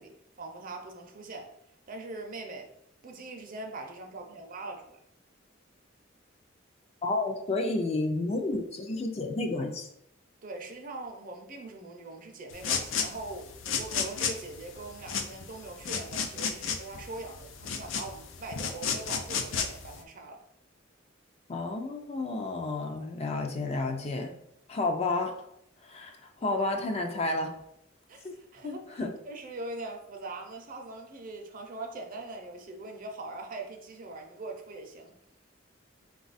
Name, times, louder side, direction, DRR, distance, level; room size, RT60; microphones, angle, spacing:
voice 1, 0.0-1.5 1.9-2.7 3.0-5.0 10.4-13.5 13.8-20.4 28.1-29.0 29.2-35.1, right 2 dB, 45° right, 3 dB, 0.6 m, -41 dB
voice 2, 7.0-9.9 21.5-24.3 24.7-25.3 25.8-27.5 28.6-29.1, left 2 dB, 30° left, 3 dB, 0.4 m, -31 dB
sound 1, 12.5-20.0, left 6 dB, 85° left, 0.5 m, -33 dB
4.0 x 2.4 x 4.0 m, 0.77 s
head